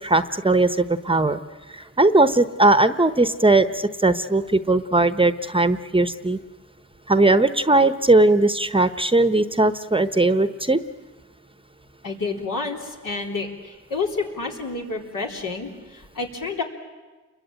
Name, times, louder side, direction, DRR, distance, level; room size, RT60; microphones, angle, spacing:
voice 1, 0.0-1.4 1.7-6.4 7.1-10.8, right 2 dB, 15° right, 11 dB, 0.9 m, -19 dB
voice 2, 12.0-16.6, left 4 dB, 75° left, 0 dB, 4.1 m, -29 dB
29.0 x 22.5 x 9.1 m, 1.3 s
cardioid pair, 75°, 33 cm